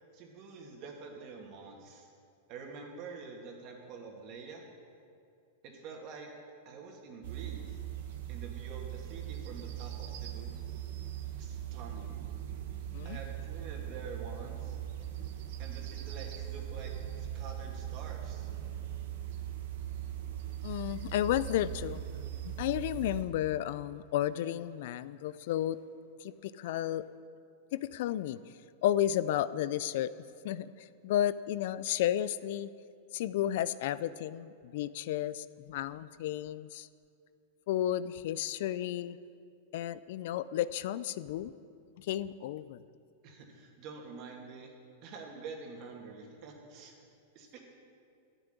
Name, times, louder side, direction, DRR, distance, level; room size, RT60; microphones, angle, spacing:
voice 1, 0.1-2.1 2.5-4.6 5.6-6.3 6.6-7.8 8.3-10.5 11.4-12.3 13.0-14.8 15.6-16.9 17.2-18.5 43.2-44.7 45.0-47.0 47.3-47.6, right 4 dB, 45° right, 1 dB, 2.7 m, -47 dB
sound 1, 7.2-23.2, right 11 dB, 65° right, 1.4 m, -40 dB
voice 2, 20.6-22.0 22.4-25.8 26.2-27.0 27.7-28.4 28.8-30.1 30.4-32.7 33.1-36.9 37.7-39.2 39.7-41.5 42.0-42.8, left 12 dB, 65° left, 16 dB, 0.4 m, -32 dB
12.5 x 7.0 x 9.7 m, 2.4 s
hypercardioid pair, 115°, 0 cm